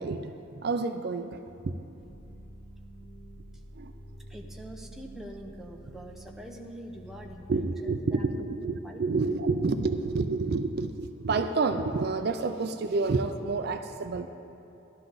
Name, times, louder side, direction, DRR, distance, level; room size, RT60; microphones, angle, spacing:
voice 1, 0.0-1.7 3.8-3.9 7.5-14.3, right 3 dB, 50° right, 8 dB, 0.4 m, -29 dB
sound 1, 2.0-7.3, right 1 dB, 70° left, 2.9 m, -48 dB
voice 2, 4.3-8.5 8.8-9.3, right 1 dB, ahead, 0 dB, 0.7 m, -45 dB
13.5 x 11.5 x 3.9 m, 2.9 s
head